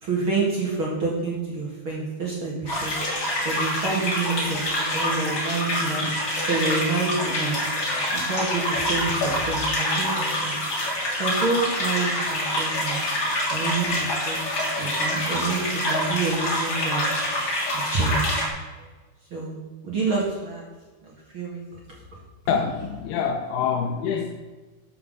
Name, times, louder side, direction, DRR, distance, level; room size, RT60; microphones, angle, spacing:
voice 1, 0.0-2.9 3.4-6.1 6.4-7.6 8.1-10.5 11.2-13.0 13.5-14.4 14.8-17.1 17.7-18.4 19.3-19.6 19.8-20.6 21.0-21.6, right 3 dB, 40° right, -4 dB, 1.9 m, -28 dB
sound 1, 2.7-18.5, left 1 dB, 30° left, 3.1 m, -26 dB
voice 2, 22.5-24.3, left 6 dB, 80° left, 5 dB, 2.4 m, -25 dB
13.0 x 5.8 x 6.9 m, 1.3 s
omnidirectional pair, 5.2 m